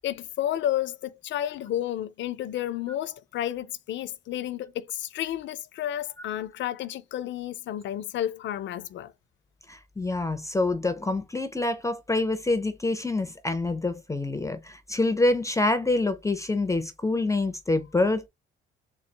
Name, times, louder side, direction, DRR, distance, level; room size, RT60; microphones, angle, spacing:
voice 1, 0.0-9.1, left 12 dB, 70° left, 0.5 m, -31 dB
voice 2, 9.7-18.3, left 2 dB, 15° left, 0.5 m, -26 dB
3.8 x 2.4 x 3.3 m
cardioid pair, 90°, 20 cm